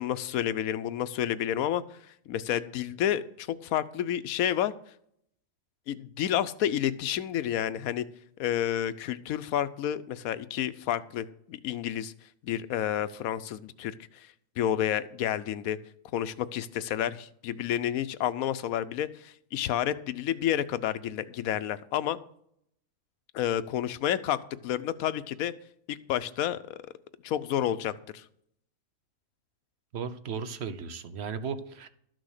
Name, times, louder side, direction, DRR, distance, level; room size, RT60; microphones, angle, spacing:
voice 1, 0.0-2.0 2.3-4.7 5.9-8.0 8.4-12.1 12.4-14.3 14.6-15.8 16.1-22.2 23.3-25.5 25.9-26.8 27.2-28.2, left 11 dB, 85° left, 15 dB, 1.1 m, -30 dB
voice 2, 29.9-31.9, right 6 dB, 55° right, 12 dB, 1.0 m, -35 dB
12.5 x 6.2 x 6.5 m, 0.69 s
omnidirectional pair, 1.4 m